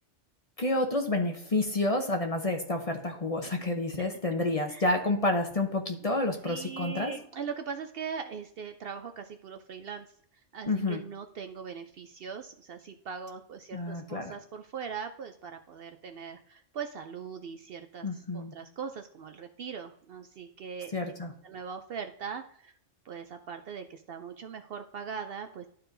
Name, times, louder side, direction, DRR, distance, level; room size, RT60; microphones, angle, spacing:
voice 1, 0.6-7.1 10.7-11.0 13.7-14.3 18.0-18.5 20.9-21.3, left 2 dB, 35° left, 3 dB, 0.7 m, -29 dB
voice 2, 6.4-10.1 10.5-21.2 21.4-22.7 23.0-25.7, right 6 dB, 60° right, 7 dB, 0.7 m, -40 dB
12.0 x 4.4 x 2.6 m, 0.64 s
omnidirectional pair, 1.3 m